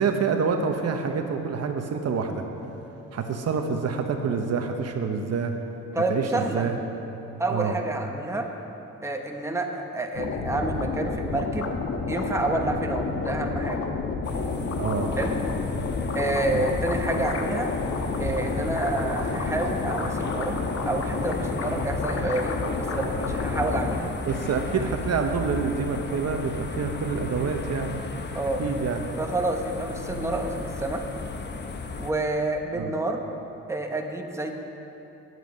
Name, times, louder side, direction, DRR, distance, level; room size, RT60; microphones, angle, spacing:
voice 1, 0.0-2.4 3.1-5.5 6.1-6.8 7.5-7.8 14.8-15.1 16.5-16.6 24.3-28.0 28.6-29.1 32.7-32.9, right 5 dB, 55° right, 4 dB, 1.1 m, -27 dB
voice 2, 5.9-6.7 7.4-8.5 9.0-11.7 12.1-13.8 15.2-15.4 16.1-17.7 18.2-20.6 20.9-24.1 28.3-28.6 29.2-31.0 32.0-33.2 33.7-34.5, right 2 dB, 10° right, 2 dB, 1.2 m, -28 dB
sound 1, 10.1-24.0, left 4 dB, 50° left, 1.2 m, -30 dB
sound 2, 14.2-32.1, left 4 dB, 35° left, 1.0 m, -35 dB
9.4 x 8.1 x 9.3 m, 3.0 s
cardioid pair, 90°, 30 cm